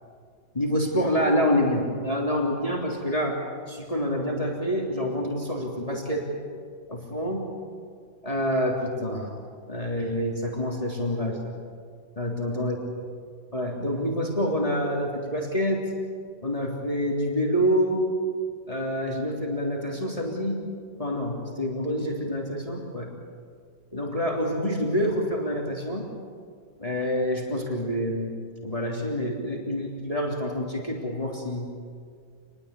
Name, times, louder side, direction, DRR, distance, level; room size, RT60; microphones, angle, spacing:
voice 1, 0.5-3.4 3.7-6.3 6.9-7.5 8.2-9.3 9.7-11.5 12.1-12.8 13.5-15.8 16.4-18.0 18.7-20.7 21.0-23.1 23.9-26.1 26.8-28.3 28.6-31.7, equal, 20° left, -1 dB, 3.4 m, -27 dB
27.5 x 21.5 x 8.4 m, 2.1 s
omnidirectional pair, 1.9 m